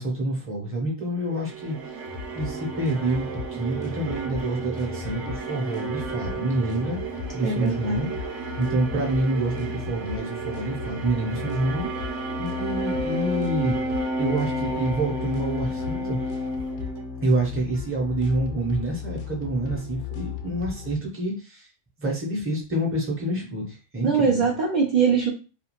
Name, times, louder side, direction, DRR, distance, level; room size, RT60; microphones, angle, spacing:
voice 1, 0.0-1.8 2.3-3.3 3.5-7.0 7.3-8.1 8.6-16.2 17.2-21.7 22.0-24.4, right 2 dB, 15° right, -1 dB, 0.6 m, -27 dB
sound 1, 1.3-17.6, right 2 dB, 75° right, 0.9 m, -32 dB
sound 2, 2.1-21.0, left 8 dB, 70° left, 0.9 m, -37 dB
voice 2, 7.4-8.1 24.0-25.3, right 5 dB, 55° right, -1 dB, 0.5 m, -22 dB
2.4 x 2.3 x 2.9 m, 0.33 s
omnidirectional pair, 1.3 m